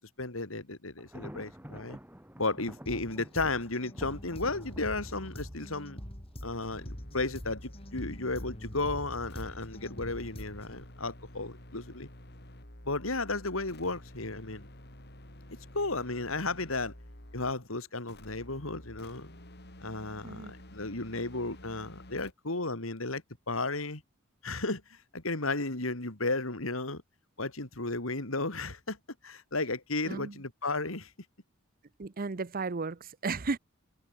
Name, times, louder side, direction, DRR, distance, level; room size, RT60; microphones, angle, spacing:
voice 1, 0.2-2.0 2.4-6.0 6.4-12.1 12.8-14.7 15.7-16.9 17.3-19.3 19.8-23.2 23.5-24.0 24.4-27.0 27.4-29.0 29.2-31.1, left 3 dB, 75° left, 3.4 m, -34 dB
Thunder, 1.0-6.8, equal, 10° right, 3.0 m, -50 dB
sound 1, 2.9-10.9, equal, 30° left, 4.2 m, -44 dB
sound 2, 6.8-17.6 18.1-22.3, left 1 dB, 55° left, 6.0 m, -50 dB
voice 2, 32.0-33.6, right 4 dB, 45° right, 0.7 m, -34 dB
head